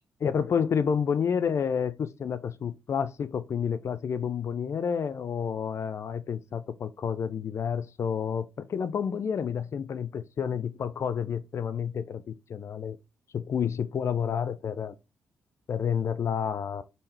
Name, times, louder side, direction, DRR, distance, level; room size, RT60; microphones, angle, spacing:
voice 1, 0.2-12.2 12.5-13.0 13.3-14.9 15.7-16.8, left 7 dB, 50° left, 0.5 m, -29 dB
4.2 x 3.6 x 3.3 m
hypercardioid pair, 40°, 6 cm